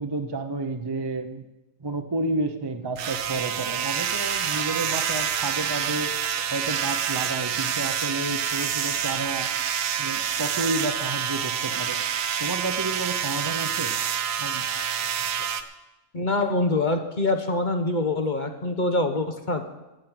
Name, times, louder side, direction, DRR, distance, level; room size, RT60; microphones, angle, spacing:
voice 1, 0.0-1.5 1.8-6.1 6.5-9.5 10.0-12.0 12.4-13.9 14.4-14.7, right 2 dB, 30° right, 7 dB, 0.5 m, -31 dB
sound 1, 3.0-15.6, right 8 dB, 60° right, 1.0 m, -27 dB
voice 2, 16.1-19.6, left 2 dB, 35° left, 6 dB, 1.0 m, -25 dB
13.5 x 6.5 x 9.1 m, 1.0 s
omnidirectional pair, 1.7 m